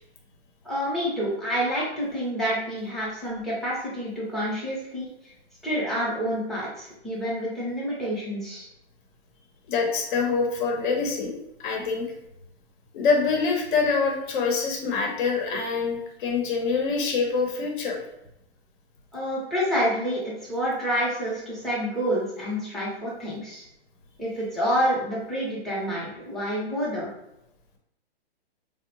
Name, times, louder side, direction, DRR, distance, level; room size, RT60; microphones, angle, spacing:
voice 1, 0.6-5.1 5.6-8.7 19.1-23.7 24.2-27.1, equal, ahead, -8 dB, 0.6 m, -28 dB
voice 2, 9.7-11.3 11.6-12.1 12.9-18.0, left 4 dB, 50° left, 1 dB, 0.8 m, -25 dB
3.6 x 2.0 x 2.9 m, 0.85 s
hypercardioid pair, 145°, 32 cm